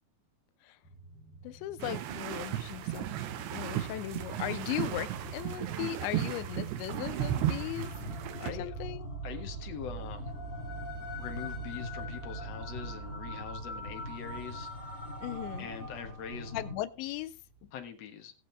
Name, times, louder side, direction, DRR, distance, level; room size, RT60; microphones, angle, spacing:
sound 1, 0.8-17.9, right 5 dB, 40° left, 2.7 m, -45 dB
voice 1, 1.4-3.1 3.5-7.9 8.4-9.1 15.2-15.7 16.5-17.4, left 15 dB, 85° left, 3.0 m, -37 dB
sound 2, 1.8-8.5, right 13 dB, 75° right, 3.2 m, -35 dB
sound 3, 7.2-16.7, left 2 dB, 15° left, 6.2 m, -42 dB
voice 2, 8.3-8.7 9.2-10.3 11.2-15.0 15.6-16.5 17.7-18.3, left 8 dB, 70° left, 1.6 m, -43 dB
19.5 x 7.5 x 3.4 m
omnidirectional pair, 5.2 m